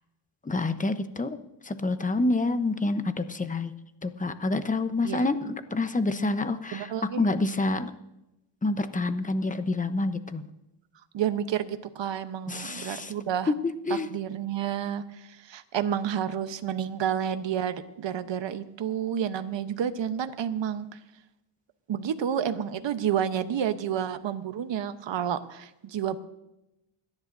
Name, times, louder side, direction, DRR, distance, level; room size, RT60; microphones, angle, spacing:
voice 1, 0.4-1.4 1.6-3.7 4.0-6.9 7.2-7.9 8.6-10.4 12.5-13.1 13.6-14.1, left 2 dB, 15° left, 10 dB, 0.9 m, -28 dB
voice 2, 6.7-7.2 11.1-13.5 13.9-20.8 21.9-26.2, right 9 dB, 60° right, 10 dB, 1.0 m, -30 dB
29.5 x 10.5 x 2.6 m, 0.93 s
cardioid pair, 100°, 50 cm